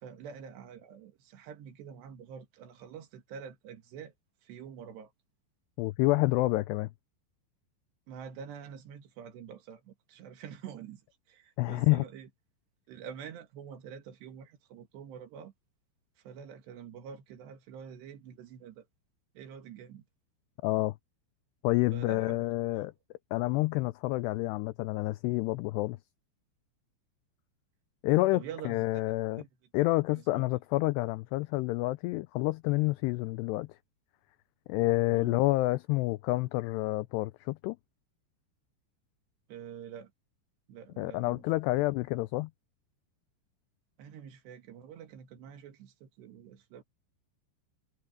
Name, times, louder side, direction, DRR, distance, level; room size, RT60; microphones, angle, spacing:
voice 1, 0.0-4.1 4.4-5.1 8.1-11.0 11.3-12.3 12.9-15.5 16.2-18.9 19.4-20.1 21.9-22.5 22.7-22.9 28.3-29.0 29.4-29.5 30.1-30.5 35.1-35.4 39.5-40.1 40.7-41.4 44.0-46.8, right 8 dB, 70° right, 4.0 m, -46 dB
voice 2, 5.8-6.9 11.6-12.0 20.6-21.0 21.6-22.9 23.3-26.0 28.0-29.4 29.7-33.7 34.7-37.8 41.0-42.5, left 20 dB, 85° left, 2.4 m, -28 dB
omnidirectional pair, 5.2 m